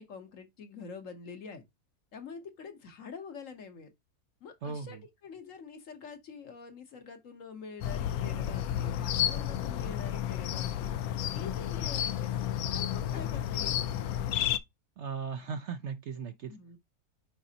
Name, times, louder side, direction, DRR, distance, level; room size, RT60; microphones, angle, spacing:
voice 1, 0.0-1.6 2.1-3.9 4.4-10.9 11.3-13.9 16.5-16.8, left 5 dB, 60° left, 1.3 m, -46 dB
voice 2, 4.6-5.0 15.0-16.6, right 6 dB, 60° right, 0.8 m, -37 dB
sound 1, 7.8-14.6, left 11 dB, 75° left, 1.0 m, -31 dB
9.2 x 3.9 x 2.8 m
omnidirectional pair, 1.6 m